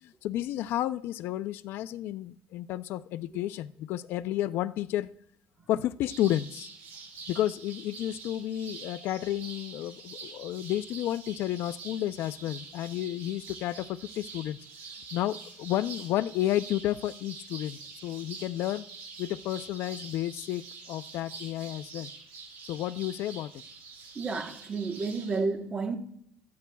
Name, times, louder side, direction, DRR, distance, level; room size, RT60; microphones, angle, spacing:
voice 1, 0.0-5.1 5.7-6.7 7.3-14.6 15.1-18.8 19.2-20.6 20.9-22.1 22.7-23.5, left 13 dB, 65° left, 0.5 m, -31 dB
sound 1, 6.1-25.4, right 4 dB, 80° right, 5.7 m, -46 dB
voice 2, 24.1-26.0, right 4 dB, 20° right, 1.1 m, -31 dB
26.5 x 9.5 x 2.3 m
cardioid pair, 155°, 4 cm